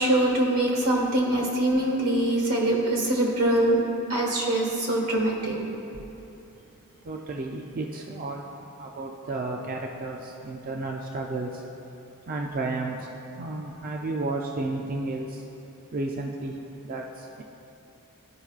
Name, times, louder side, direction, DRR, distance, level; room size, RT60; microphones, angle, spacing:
voice 1, 0.0-3.8 4.1-5.6, right 1 dB, 85° right, -1 dB, 1.6 m, -23 dB
voice 2, 7.1-8.5 8.8-11.5 12.3-13.0 13.4-15.3 15.9-16.5 16.9-17.0, right 2 dB, 40° right, 1 dB, 0.4 m, -32 dB
12.5 x 5.2 x 2.4 m, 2.9 s
head